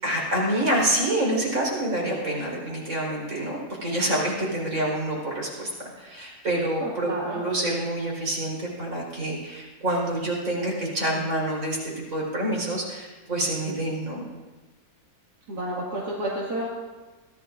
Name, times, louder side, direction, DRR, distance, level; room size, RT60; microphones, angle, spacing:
voice 1, 0.0-5.7 6.0-14.2, right 1 dB, 55° right, -3 dB, 4.8 m, -27 dB
voice 2, 6.8-7.4 15.5-16.7, right 1 dB, 80° right, -6 dB, 2.7 m, -30 dB
23.0 x 16.0 x 2.6 m, 1.3 s
omnidirectional pair, 1.7 m